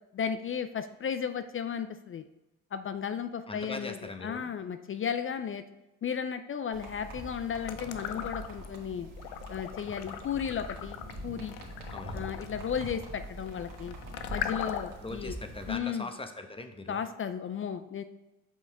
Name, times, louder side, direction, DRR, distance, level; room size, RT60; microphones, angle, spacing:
voice 1, 0.1-2.3 2.7-5.6 6.0-9.1 9.5-11.5 12.1-13.9 14.3-15.4 15.7-16.1 16.9-18.0, left 7 dB, 35° left, 10 dB, 0.5 m, -34 dB
voice 2, 3.5-4.5 11.9-12.2 15.0-17.0, left 2 dB, 15° left, 6 dB, 0.9 m, -40 dB
sound 1, 6.7-15.8, right 1 dB, 60° right, 2.1 m, -44 dB
sound 2, 7.6-8.8 9.2-15.1, left 10 dB, 90° left, 0.6 m, -39 dB
7.5 x 5.3 x 3.4 m, 1.0 s
supercardioid pair, 65°, 36 cm